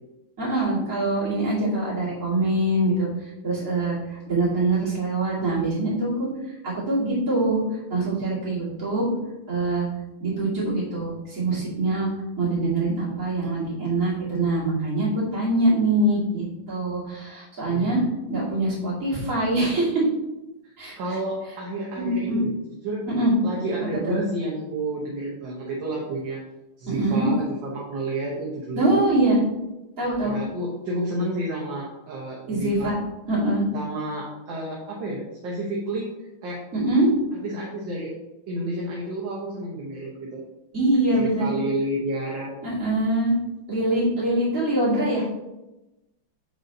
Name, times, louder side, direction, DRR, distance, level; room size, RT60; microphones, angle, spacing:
voice 1, 0.4-6.3 6.6-7.6 7.9-9.2 9.5-9.9 10.2-12.1 12.4-18.0 18.3-20.0 20.8-21.0 22.0-22.5 23.1-23.3 24.1-24.2 26.9-27.3 28.7-29.4 30.0-30.3 32.5-32.9 33.3-33.6 36.7-37.1 40.7-41.5 42.6-43.3 43.7-45.3, right 2 dB, 35° right, -8 dB, 2.8 m, -24 dB
voice 2, 17.6-18.0 21.0-22.5 22.8-23.0 23.4-26.4 26.8-29.0 30.2-32.9 33.7-36.6 37.4-38.1 38.5-40.4 41.1-42.5, right 1 dB, 65° right, -4 dB, 1.7 m, -30 dB
6.9 x 4.0 x 3.9 m, 0.98 s
omnidirectional pair, 2.3 m